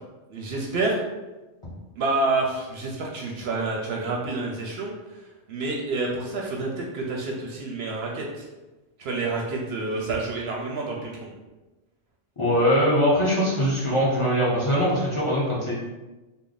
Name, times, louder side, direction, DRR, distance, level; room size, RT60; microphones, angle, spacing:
voice 1, 0.3-1.0 2.0-4.9 5.5-8.5 9.0-11.3, right 3 dB, 65° right, -1 dB, 0.7 m, -28 dB
voice 2, 12.4-15.7, equal, 30° left, -7 dB, 0.8 m, -22 dB
3.3 x 2.1 x 3.8 m, 1.1 s
omnidirectional pair, 1.2 m